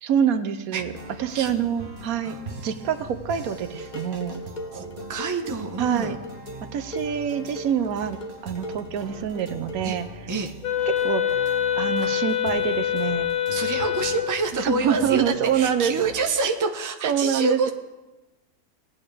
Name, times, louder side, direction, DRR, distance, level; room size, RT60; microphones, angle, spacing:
voice 1, 0.0-0.9 1.2-2.4 2.6-4.4 5.8-6.2 6.7-10.1 11.0-11.2 11.8-13.3 14.6-15.9 17.0-17.7, right 8 dB, 80° right, 10 dB, 1.1 m, -26 dB
sound 1, 0.8-16.3, right 2 dB, 40° right, 1.1 m, -42 dB
Dishes pots and pans, 3.5-10.1, equal, 35° left, 1.0 m, -39 dB
voice 2, 4.7-6.2 9.8-10.0 10.3-10.5 12.0-12.1 13.5-17.7, right 3 dB, 20° right, 4 dB, 0.6 m, -27 dB
Wind instrument woodwind instrument, 10.6-14.5, left 10 dB, 80° left, 1.4 m, -25 dB
18.5 x 8.6 x 3.3 m, 1.1 s
omnidirectional pair, 1.5 m